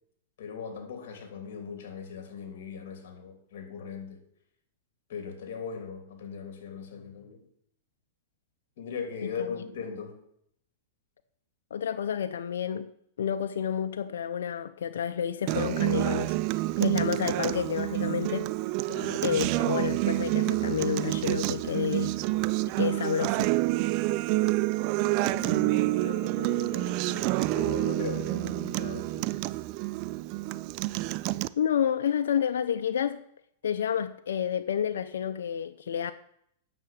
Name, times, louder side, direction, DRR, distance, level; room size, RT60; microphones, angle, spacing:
voice 1, 0.4-4.2 5.1-7.4 8.8-10.2 18.9-19.3 25.2-29.3, left 6 dB, 65° left, 3.1 m, -39 dB
voice 2, 11.7-12.9 13.2-16.4 16.8-18.5 19.2-22.2 22.8-23.5 31.6-33.2 33.6-36.1, left 8 dB, 85° left, 0.6 m, -29 dB
Acoustic guitar, 15.5-31.5, right 19 dB, 45° right, 0.4 m, -28 dB
9.2 x 7.0 x 7.4 m
hypercardioid pair, 140°, 0 cm